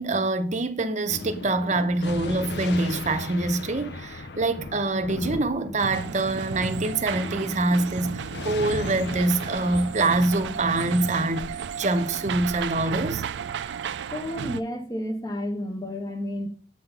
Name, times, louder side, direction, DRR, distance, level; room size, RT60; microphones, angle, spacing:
voice 1, 0.0-13.2, right 2 dB, 40° right, 0.7 m, -25 dB
Thunder, 1.1-11.9, left 3 dB, 70° left, 0.7 m, -38 dB
sound 1, 5.8-14.6, right 7 dB, 85° right, 0.4 m, -33 dB
voice 2, 14.1-16.5, left 1 dB, 20° left, 1.0 m, -31 dB
7.7 x 3.9 x 5.6 m
head